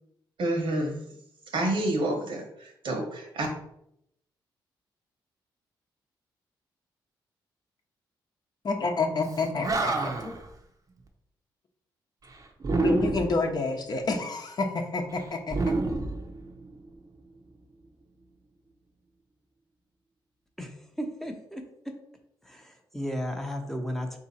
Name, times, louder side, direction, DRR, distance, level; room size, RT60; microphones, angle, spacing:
voice 1, 0.4-1.0 1.5-3.5, right 1 dB, 70° right, 2 dB, 1.2 m, -28 dB
voice 2, 8.6-10.3 12.7-15.6, left 3 dB, 50° left, 3 dB, 0.8 m, -29 dB
Animal, 9.3-9.4 9.6-10.4 12.6-13.5 15.5-16.8, right 3 dB, 40° right, 0.7 m, -28 dB
voice 3, 20.6-21.9 22.4-24.2, equal, 5° left, 3 dB, 0.7 m, -35 dB
3.6 x 2.8 x 4.1 m, 0.76 s
cardioid pair, 70°, 9 cm